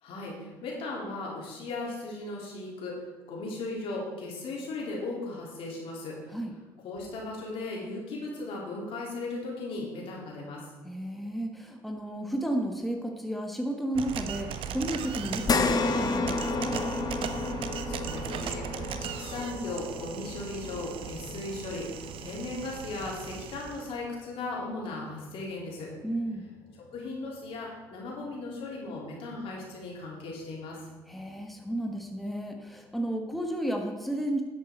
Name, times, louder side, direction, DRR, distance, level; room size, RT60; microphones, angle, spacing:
voice 1, 0.0-2.9 3.3-6.3 6.8-10.6 17.8-21.8 22.2-25.9 26.9-30.8, left 2 dB, 70° left, -3 dB, 3.5 m, -37 dB
voice 2, 10.8-16.9 26.0-26.5 31.1-34.4, right 1 dB, ahead, 2 dB, 1.5 m, -33 dB
sound 1, 13.9-23.9, right 8 dB, 65° right, 0.8 m, -38 dB
sound 2, 15.5-24.1 24.5-24.6 26.1-26.2, left 4 dB, 40° left, 1.0 m, -33 dB
10.5 x 8.4 x 4.5 m, 1.3 s
supercardioid pair, 65°, 10 cm